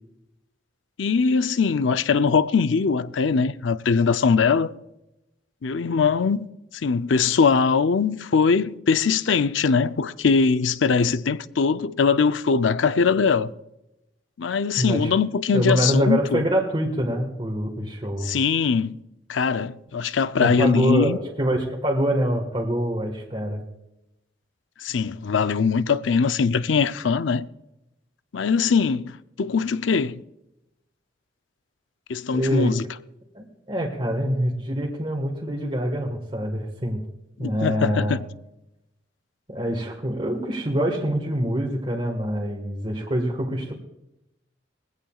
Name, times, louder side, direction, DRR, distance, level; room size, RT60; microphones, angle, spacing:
voice 1, 1.0-4.7 5.6-6.5 6.7-13.5 14.4-16.4 18.2-19.0 19.3-21.2 24.8-27.4 28.3-30.2 32.1-32.8 37.4-38.3, left 5 dB, 90° left, 0.5 m, -21 dB
voice 2, 14.8-15.1 15.5-18.3 20.4-23.6 32.3-32.7 33.3-37.0 37.4-38.2 39.5-43.7, equal, 30° right, 1.5 m, -25 dB
21.0 x 16.0 x 2.4 m
head